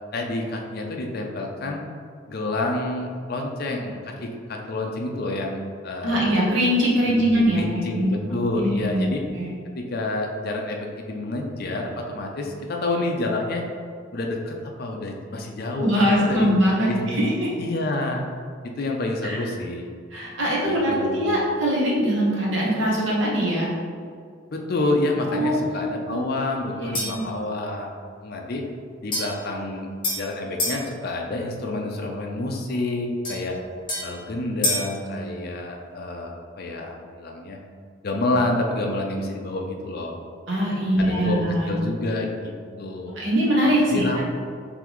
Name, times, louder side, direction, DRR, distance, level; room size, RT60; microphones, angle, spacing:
voice 1, 0.1-1.9 2.3-6.2 7.1-9.2 9.8-13.6 14.1-16.5 16.9-18.2 18.6-19.9 20.6-21.3 24.5-27.9 28.2-28.6 29.0-29.9 30.2-33.6 34.0-37.6 38.0-40.2 41.0-43.1 43.9-44.2, left 2 dB, 50° left, 1 dB, 0.5 m, -28 dB
voice 2, 6.0-7.6 7.9-8.1 8.5-9.1 9.3-9.5 15.8-17.5 19.2-19.5 20.1-23.7 25.3-26.2 26.7-27.2 40.5-41.8 43.2-44.2, equal, 65° right, -5 dB, 1.1 m, -22 dB
sound 1, 26.9-27.3 29.1-30.8 33.2-35.0, left 1 dB, 25° left, 1.2 m, -29 dB
4.0 x 3.3 x 3.0 m, 2.1 s
head